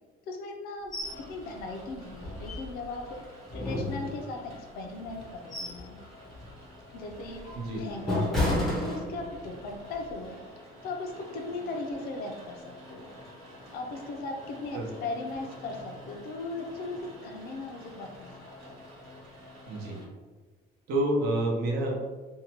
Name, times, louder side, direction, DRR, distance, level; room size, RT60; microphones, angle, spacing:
voice 1, 0.3-0.9 1.3-3.0 3.3-6.0 6.9-10.4 10.8-13.1 13.7-18.7, left 2 dB, 60° left, 2 dB, 0.4 m, -38 dB
sound 1, 0.9-1.2 1.6-1.7 2.2-3.0 3.5-4.5 5.1-5.9 6.3-6.5 7.1-9.5 9.9-10.1, left 1 dB, ahead, 0.5 m, -31 dB
Rain, 1.0-20.0, left 1 dB, 30° right, 1.0 m, -49 dB
voice 2, 19.7-20.0 20.9-21.9, right 1 dB, 65° right, -1 dB, 0.7 m, -28 dB
2.6 x 2.1 x 2.8 m, 1.3 s
cardioid pair, 175°, 18 cm